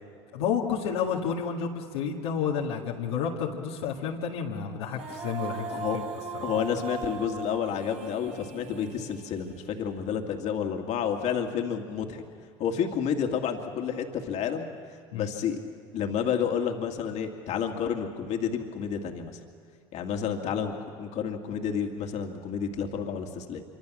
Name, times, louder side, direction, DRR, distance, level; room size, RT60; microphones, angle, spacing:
voice 1, 0.3-6.0 6.3-6.5 15.1-15.3, left 7 dB, 85° left, -2 dB, 2.0 m, -30 dB
Female singing, 4.8-10.0, right 5 dB, 60° right, 3.7 m, -39 dB
voice 2, 6.4-12.2 12.6-14.7 15.1-15.6 15.9-19.4 19.9-23.6, left 7 dB, 60° left, 3 dB, 2.3 m, -30 dB
26.0 x 25.0 x 6.4 m, 2.3 s
hypercardioid pair, 80°, 13 cm